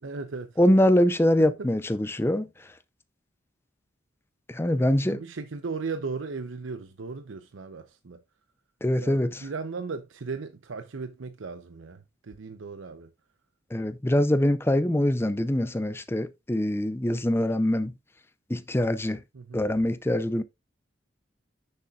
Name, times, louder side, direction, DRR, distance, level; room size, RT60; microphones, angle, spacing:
voice 1, 0.0-0.6 1.4-1.7 5.0-8.2 9.0-13.1 19.3-19.6, right 4 dB, 80° right, 0.7 m, -37 dB
voice 2, 0.6-2.5 4.5-5.2 8.8-9.4 13.7-17.9 18.5-19.2 19.5-20.4, left 1 dB, 10° left, 0.5 m, -24 dB
9.8 x 6.8 x 2.4 m
head